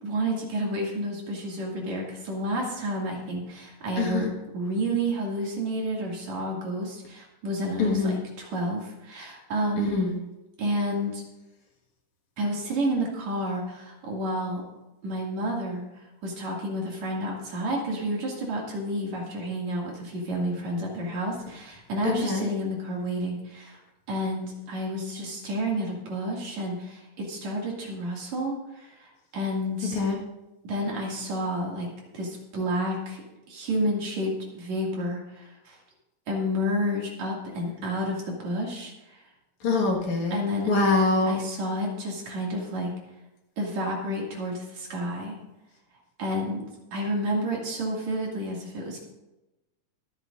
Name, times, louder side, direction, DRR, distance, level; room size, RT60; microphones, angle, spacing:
voice 1, 0.0-9.9 10.6-11.2 12.4-14.6 15.0-15.8 16.2-23.8 24.1-30.0 30.6-31.9 32.1-33.2 33.5-35.8 36.3-39.2 40.3-40.7 41.2-42.9 43.6-45.4 46.2-46.7 46.9-49.0, equal, 55° right, -2 dB, 3.5 m, -30 dB
voice 2, 4.0-4.3 7.8-8.2 9.8-10.1 22.0-22.5 29.9-30.2 39.6-40.4 40.7-41.4, left 3 dB, 60° left, 0 dB, 2.9 m, -24 dB
24.0 x 9.4 x 2.6 m, 0.98 s
omnidirectional pair, 3.9 m